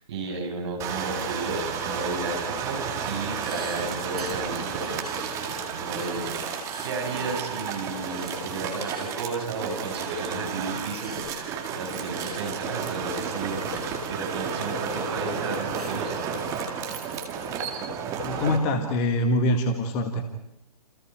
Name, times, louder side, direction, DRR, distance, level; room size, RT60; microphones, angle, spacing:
voice 1, 0.0-16.2, right 3 dB, 40° right, 2 dB, 6.6 m, -34 dB
sound 1, 0.8-18.6, right 6 dB, 15° right, 2.1 m, -32 dB
sound 2, 3.4-4.5 5.0-6.2 6.6-7.0 8.1-8.4 8.8-9.1 11.0-11.5 12.2-12.5 12.8-12.9 13.3-13.4 15.0-16.0, right 2 dB, 70° right, 5.6 m, -42 dB
voice 2, 18.2-20.3, left 1 dB, 20° left, 6 dB, 1.7 m, -24 dB
29.5 x 27.5 x 4.7 m, 0.88 s
figure-of-eight pair, 135°, 21 cm